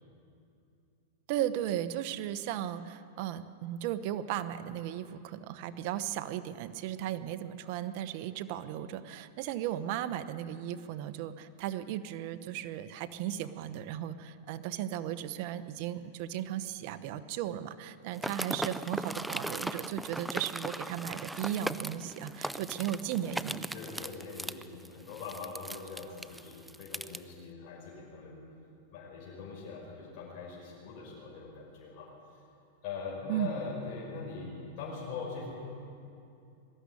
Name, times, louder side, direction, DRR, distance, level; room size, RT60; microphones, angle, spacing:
voice 1, 1.3-23.7 33.3-33.5, right 11 dB, 50° right, 11 dB, 1.0 m, -36 dB
sound 1, 18.1-27.2, right 1 dB, 5° right, 0.5 m, -38 dB
voice 2, 23.7-28.4 28.9-32.1 32.8-35.5, left 4 dB, 50° left, -4 dB, 5.9 m, -42 dB
21.5 x 13.0 x 10.0 m, 2.6 s
supercardioid pair, 140°, 0 cm